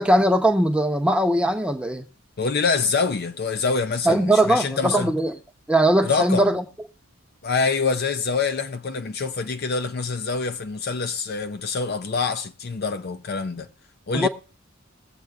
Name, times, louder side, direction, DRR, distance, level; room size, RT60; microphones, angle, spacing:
voice 1, 0.0-2.1 4.0-5.3 5.7-6.6 14.1-14.3, right 1 dB, 5° right, 0.8 m, -20 dB
voice 2, 2.4-5.1 6.0-6.5 7.4-13.7 14.1-14.3, left 4 dB, 50° left, 0.5 m, -25 dB
21.5 x 7.7 x 2.4 m
head